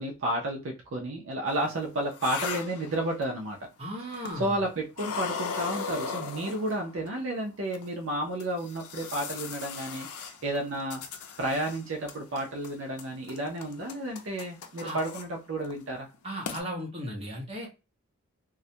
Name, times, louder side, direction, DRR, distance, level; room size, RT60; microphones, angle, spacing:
voice 1, 0.0-3.6 4.4-11.0 11.4-16.1, right 1 dB, 60° right, 0 dB, 0.5 m, -32 dB
sound 1, 1.5-3.5 4.1-4.6 4.9-7.1 7.7-7.8 8.4-11.8 12.1-12.7 13.0-15.2 15.6-15.8 16.1-16.2 16.5-16.6, left 6 dB, 85° left, 0.5 m, -38 dB
voice 2, 3.8-4.6 14.8-15.0 16.2-17.7, equal, 25° right, -2 dB, 0.8 m, -36 dB
2.3 x 2.1 x 2.7 m, 0.29 s
head